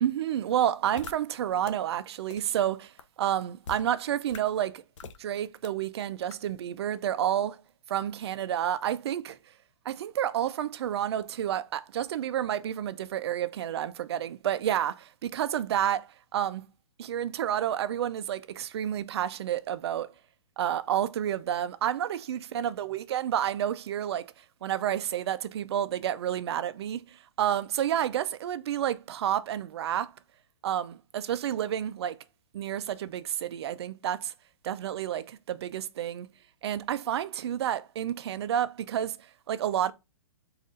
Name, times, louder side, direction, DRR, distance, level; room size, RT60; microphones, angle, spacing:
voice 1, 0.0-2.9 3.2-4.8 5.2-7.6 7.9-9.4 9.9-16.7 17.0-20.1 20.6-24.3 24.6-30.1 30.6-32.2 32.5-34.3 34.6-36.3 36.6-39.9, right 10 dB, 55° right, 0.4 m, -30 dB
sound 1, 1.0-1.1 1.6-1.7 2.3-2.4 3.0-3.1 3.6-3.8 4.3-4.4 5.0-5.2 5.6-5.7 6.3-6.4, left 6 dB, 70° left, 0.6 m, -41 dB
4.0 x 2.4 x 3.7 m
hypercardioid pair, 155°, 16 cm